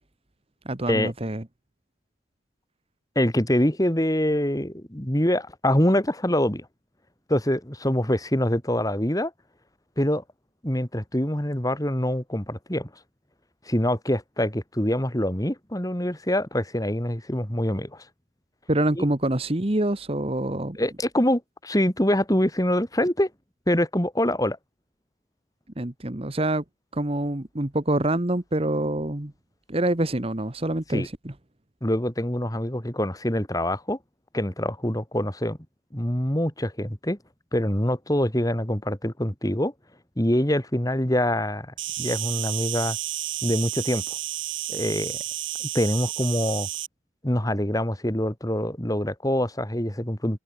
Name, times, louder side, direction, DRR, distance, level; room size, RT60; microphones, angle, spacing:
voice 1, 0.6-1.4 18.7-20.8 25.8-26.6 26.9-29.3 29.7-31.3, right 1 dB, 30° right, 1.3 m, -26 dB
voice 2, 3.1-6.7 7.3-9.3 10.0-10.2 10.6-12.9 13.7-18.0 19.0-19.1 20.7-23.3 23.7-24.6 30.9-31.1 31.8-34.0 34.3-35.6 35.9-37.2 37.5-39.7 40.2-43.0 43.4-44.0 44.7-45.2 45.7-46.7 47.2-50.4, left 1 dB, 20° left, 3.0 m, -25 dB
Insect, 41.8-46.9, right 13 dB, 80° right, 4.9 m, -31 dB
head